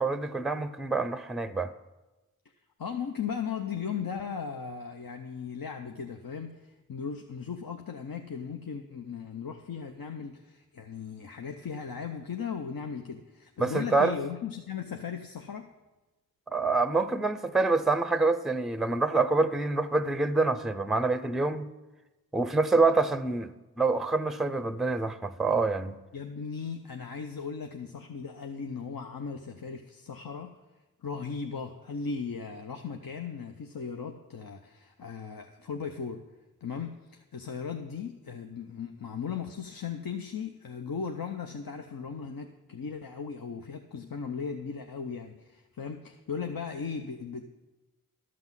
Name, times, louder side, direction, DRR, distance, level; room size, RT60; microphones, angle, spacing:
voice 1, 0.0-1.7 13.6-14.1 16.5-21.7 22.3-23.5 23.8-26.0, right 3 dB, ahead, 0.5 m, -26 dB
voice 2, 2.8-15.7 26.1-30.6 31.0-36.2 36.6-47.4, left 6 dB, 75° left, 0.7 m, -37 dB
12.5 x 6.0 x 7.3 m
wide cardioid pair, 55°, 35 cm